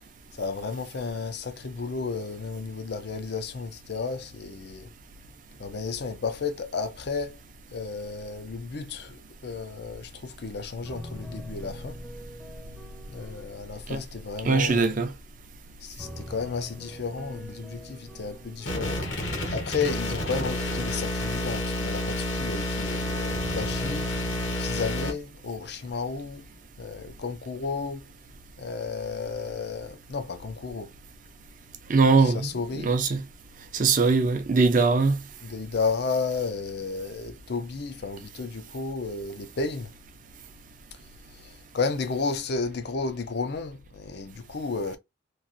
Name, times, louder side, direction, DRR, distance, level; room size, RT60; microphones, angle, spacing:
voice 1, 0.3-4.9 5.6-7.4 7.7-12.0 13.1-15.0 15.8-19.1 19.5-24.1 24.6-26.5 26.8-28.1 28.6-30.9 32.2-33.0 35.4-39.9 41.3-45.0, left 4 dB, 55° left, 0.5 m, -33 dB
sound 1, 10.1-10.4 10.8-15.3 16.0-21.7 23.3-24.6, equal, ahead, 0.6 m, -44 dB
voice 2, 14.4-15.1 31.9-32.5 32.8-33.2 33.7-35.2, right 4 dB, 40° right, 0.5 m, -21 dB
sound 2, 18.7-25.1, left 1 dB, 70° left, 1.1 m, -29 dB
3.1 x 2.4 x 2.5 m
head